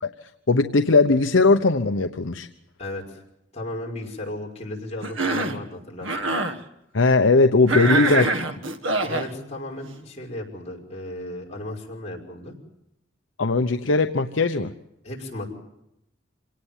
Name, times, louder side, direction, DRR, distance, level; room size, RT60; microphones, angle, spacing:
voice 1, 0.5-2.5 6.9-8.3 13.4-14.7, left 3 dB, 70° left, 7 dB, 0.9 m, -19 dB
voice 2, 2.8-3.2 3.5-6.1 7.6-8.3 9.0-12.6 15.0-15.5, left 1 dB, 35° left, -1 dB, 5.8 m, -35 dB
Cough, 5.0-5.6 6.0-6.6 7.7-9.3, right 3 dB, 75° right, 1.7 m, -24 dB
26.5 x 18.5 x 7.3 m, 0.84 s
head